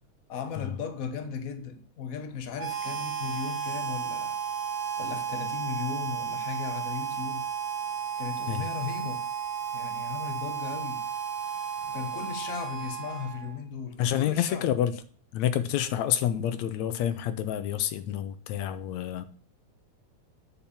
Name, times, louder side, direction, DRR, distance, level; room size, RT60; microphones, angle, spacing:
voice 1, 0.3-4.4 5.0-7.5 8.2-9.3 9.7-11.0 11.8-14.7, left 6 dB, 55° left, 0.9 m, -37 dB
Harmonica, 2.6-13.6, right 8 dB, 80° right, 2.5 m, -33 dB
voice 2, 14.0-15.0 15.3-19.3, left 10 dB, 75° left, 2.1 m, -28 dB
8.9 x 5.7 x 7.0 m
omnidirectional pair, 3.4 m